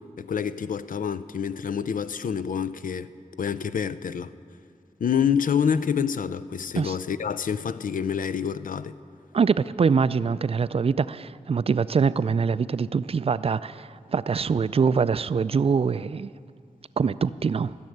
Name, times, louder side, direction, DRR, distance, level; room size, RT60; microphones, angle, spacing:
voice 1, 0.2-3.1 3.4-4.3 5.0-8.9, left 7 dB, 75° left, 0.4 m, -27 dB
voice 2, 9.3-16.3 17.0-17.8, right 5 dB, 45° right, 0.3 m, -24 dB
13.5 x 6.6 x 9.3 m
cardioid pair, 45°, 14 cm